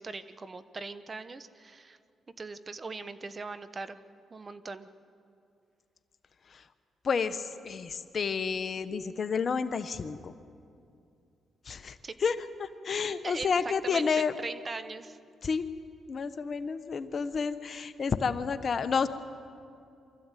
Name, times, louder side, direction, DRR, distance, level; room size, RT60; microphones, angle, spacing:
voice 1, 0.0-2.0 2.4-4.0 4.3-4.9 12.0-12.1 13.2-15.2, right 3 dB, 35° right, 12 dB, 1.0 m, -40 dB
voice 2, 7.0-10.3 11.7-12.0 12.2-14.3 15.4-15.6 16.1-19.1, left 5 dB, 50° left, 11 dB, 1.0 m, -30 dB
24.0 x 14.0 x 9.1 m, 2.5 s
cardioid pair, 70°, 0 cm